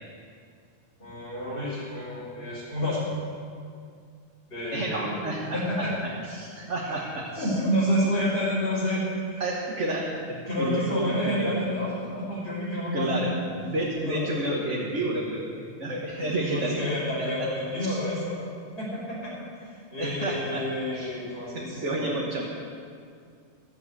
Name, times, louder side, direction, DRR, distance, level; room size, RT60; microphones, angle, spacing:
voice 1, 1.0-3.0 4.5-5.1 5.5-5.9 6.8-7.1 7.4-9.0 9.3-9.4 10.5-13.2 14.0-14.2 16.1-18.4 18.8-22.2, equal, 55° left, -12 dB, 4.4 m, -29 dB
voice 2, 4.7-5.9 6.3-7.5 9.4-11.5 12.9-13.3 13.6-16.9 17.2-17.3 17.8-18.0 20.0-20.6 20.9-21.1 21.5-22.6, right 2 dB, 90° right, -3 dB, 1.8 m, -30 dB
15.5 x 8.0 x 8.1 m, 2.2 s
omnidirectional pair, 1.2 m